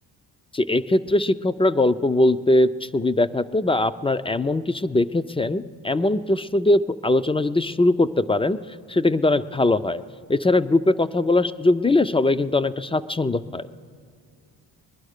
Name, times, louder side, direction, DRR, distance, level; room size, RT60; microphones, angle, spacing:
voice 1, 0.5-8.6 8.9-10.0 10.3-13.7, left 2 dB, 15° left, 13 dB, 0.3 m, -21 dB
20.5 x 10.5 x 6.5 m, 2.1 s
cardioid pair, 75°, 43 cm